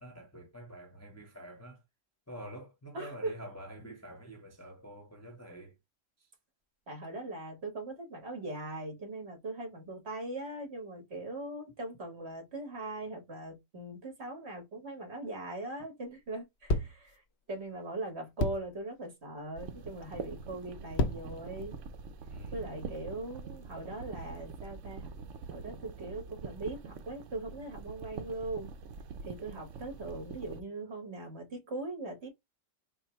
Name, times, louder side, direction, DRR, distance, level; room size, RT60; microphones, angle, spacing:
voice 1, 0.0-1.8 2.3-5.8 6.2-6.3 22.3-22.8, equal, 15° left, 0.8 m, -47 dB
voice 2, 2.9-3.3 6.9-17.2 17.5-21.7 22.5-25.1 25.5-28.7 29.2-32.3, right 2 dB, 55° right, 1.8 m, -40 dB
sound 1, 16.6-17.1 18.4-18.7 19.6-19.9 20.7-21.4 22.0-22.9, left 1 dB, 65° left, 0.8 m, -32 dB
sound 2, 19.6-30.6, right 5 dB, 75° right, 0.9 m, -45 dB
4.3 x 2.0 x 4.4 m
omnidirectional pair, 1.3 m